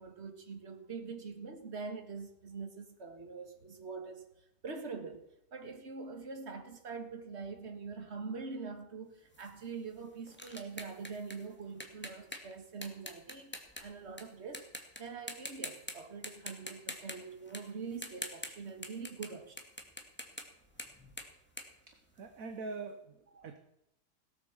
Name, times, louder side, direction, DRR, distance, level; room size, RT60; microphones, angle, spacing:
voice 1, 0.0-4.3 4.6-14.7 15.0-19.6 23.3-23.5, right 4 dB, 35° right, 1.9 m, -44 dB
sound 1, 9.3-14.2 14.5-15.0 15.3-15.9 16.2-22.6, left 1 dB, 5° left, 1.9 m, -45 dB
voice 2, 21.9-23.6, right 4 dB, 50° right, 1.4 m, -44 dB
17.5 x 8.4 x 7.2 m
omnidirectional pair, 2.0 m